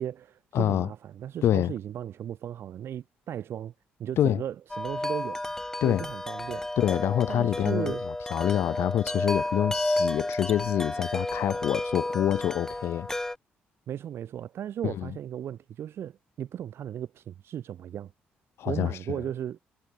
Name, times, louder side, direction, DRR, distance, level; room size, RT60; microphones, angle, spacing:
voice 1, 0.0-3.7 4.0-5.4 5.8-6.7 7.3-8.1 13.9-18.1 18.7-19.6, right 10 dB, 65° right, 5.9 m, -36 dB
voice 2, 0.5-0.9 1.4-1.7 4.2-4.4 5.8-6.0 6.8-7.9 8.3-13.1 14.8-15.1 18.6-19.0, left 11 dB, 70° left, 3.6 m, -26 dB
Wind chime, 4.7-13.3, left 1 dB, 10° left, 1.2 m, -31 dB
supercardioid pair, 70°, 4 cm